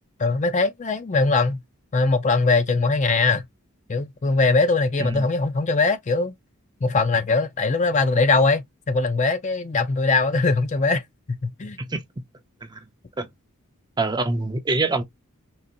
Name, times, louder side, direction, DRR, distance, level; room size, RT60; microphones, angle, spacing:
voice 1, 0.2-1.6 1.9-3.4 3.9-6.3 6.8-11.0 11.4-11.8, left 3 dB, 35° left, 0.5 m, -21 dB
voice 2, 14.0-15.0, right 3 dB, 20° right, 0.5 m, -24 dB
4.0 x 2.5 x 2.5 m
head